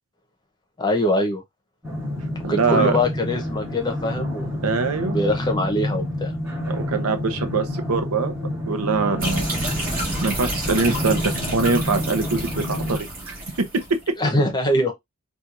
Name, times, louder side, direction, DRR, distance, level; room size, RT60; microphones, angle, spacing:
voice 1, 0.8-1.4 2.5-4.6 5.0-6.4 14.2-14.9, left 1 dB, 20° left, 0.8 m, -23 dB
sound 1, 1.8-13.0, left 1 dB, 10° right, 2.3 m, -29 dB
voice 2, 2.4-3.0 4.6-5.2 6.7-8.3 8.6-9.6 9.9-13.4, right 4 dB, 70° right, 0.7 m, -23 dB
sound 2, 9.2-14.0, right 1 dB, 40° right, 1.8 m, -29 dB
4.4 x 2.4 x 2.5 m
head